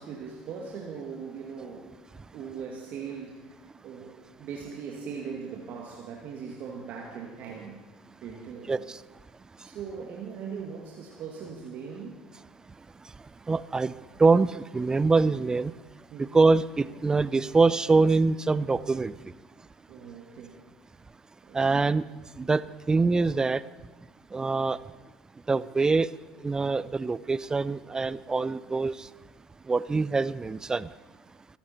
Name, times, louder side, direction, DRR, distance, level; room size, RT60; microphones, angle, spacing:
voice 1, 0.0-2.0 2.3-3.5 3.8-7.8 8.2-8.9 9.6-12.2 16.1-16.4 19.9-20.6 21.4-21.8, right 6 dB, 55° right, -1 dB, 2.1 m, -40 dB
voice 2, 8.7-9.0 13.5-13.9 14.2-15.7 16.3-19.1 21.5-22.0 22.4-22.6 22.9-23.6 24.3-24.8 25.5-26.1 26.4-29.1 29.7-30.9, right 3 dB, 20° right, 18 dB, 0.5 m, -24 dB
23.0 x 11.0 x 4.4 m, 1.2 s
hypercardioid pair, 70°, 3 cm